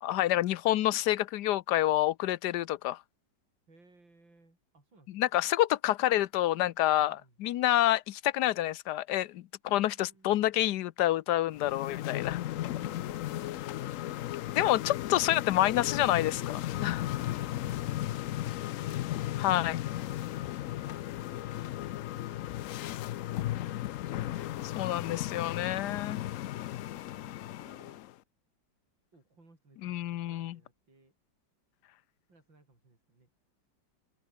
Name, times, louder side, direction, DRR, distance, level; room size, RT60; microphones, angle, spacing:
voice 1, 0.0-3.0 5.1-12.4 14.5-17.0 19.4-19.8 24.8-26.2 29.8-30.6, left 14 dB, 70° left, 1.2 m, -28 dB
voice 2, 3.7-5.3 7.0-7.4 9.7-11.1 12.8-13.7 14.8-14.9 17.5-21.9 22.2-23.2 24.1-24.9 26.9-28.0 29.1-31.1 32.3-33.3, right 2 dB, 90° right, 7.3 m, -62 dB
sound 1, 11.5-28.1, left 14 dB, 90° left, 0.7 m, -35 dB
open air
omnidirectional pair, 2.0 m